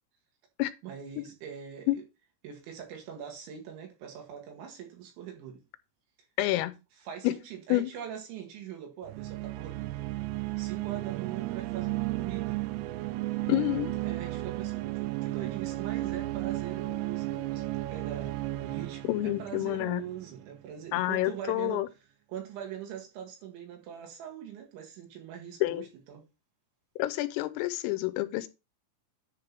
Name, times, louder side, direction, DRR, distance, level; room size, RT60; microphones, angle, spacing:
voice 1, 0.8-2.0 2.4-5.6 7.1-10.0 10.5-12.6 13.9-21.8 22.3-26.2, right 9 dB, 65° right, 4.2 m, -42 dB
voice 2, 6.4-6.7 7.2-7.3 7.7-7.9 13.5-13.9 19.0-20.0 20.9-21.9 25.6-25.9 27.0-28.5, left 17 dB, 85° left, 3.2 m, -28 dB
sound 1, 9.0-20.6, right 18 dB, 85° right, 3.1 m, -34 dB
10.5 x 3.5 x 5.9 m
omnidirectional pair, 6.0 m